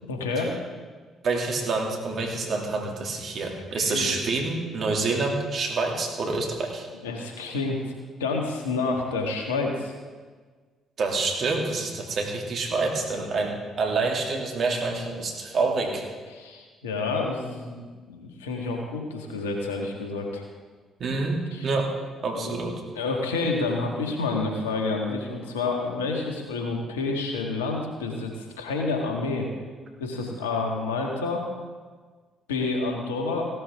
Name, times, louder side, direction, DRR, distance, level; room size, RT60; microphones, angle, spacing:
voice 1, 0.1-0.6 3.7-4.2 7.0-7.9 8.2-9.9 13.3-13.5 16.3-20.4 21.5-21.7 22.4-22.5 23.0-29.5 30.0-31.4 32.5-33.5, left 3 dB, 85° left, 1 dB, 1.8 m, -29 dB
voice 2, 1.2-6.9 11.0-16.1 21.0-21.9 22.2-22.8, right 3 dB, 55° right, 1 dB, 2.7 m, -27 dB
16.5 x 12.0 x 3.7 m, 1.5 s
hypercardioid pair, 50°, 0 cm